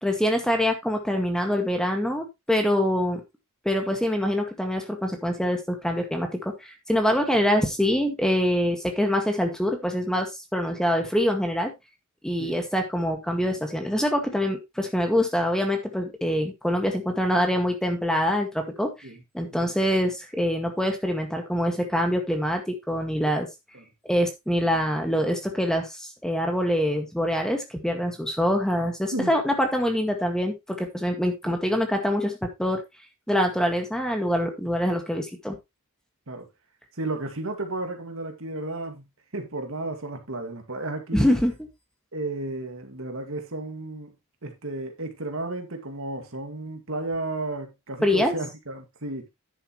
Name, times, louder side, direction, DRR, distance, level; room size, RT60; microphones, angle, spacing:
voice 1, 0.0-3.2 3.7-11.7 12.2-18.9 19.3-23.5 24.1-32.8 33.3-35.6 41.1-41.5 48.0-48.3, equal, 5° left, 1.9 m, -25 dB
voice 2, 28.8-29.3 31.4-31.6 36.3-36.5 37.0-39.1 39.3-41.3 42.1-44.1 44.4-49.3, right 2 dB, 60° right, 2.2 m, -33 dB
10.5 x 8.0 x 3.1 m
head